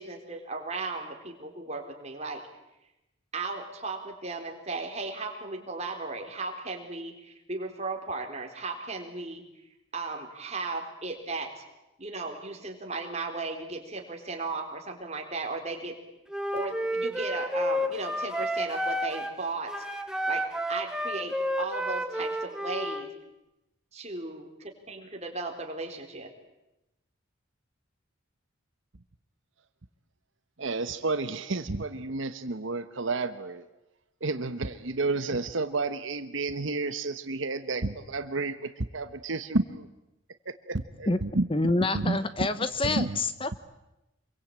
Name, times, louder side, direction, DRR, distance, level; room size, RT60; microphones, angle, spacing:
voice 1, 0.0-2.4 3.3-9.4 9.9-11.6 12.0-16.0 16.5-19.7 20.3-23.1 23.9-26.3, right 3 dB, 30° right, 3 dB, 4.1 m, -36 dB
Wind instrument woodwind instrument, 16.3-19.4 19.7-23.1, equal, 5° right, 1.5 m, -31 dB
voice 2, 30.6-33.7 34.2-39.9 40.4-42.5 42.8-43.2, right 3 dB, 70° right, 11 dB, 1.1 m, -31 dB
voice 3, 41.5-43.5, left 2 dB, 25° left, 13 dB, 0.9 m, -27 dB
27.0 x 23.0 x 8.9 m, 0.94 s
head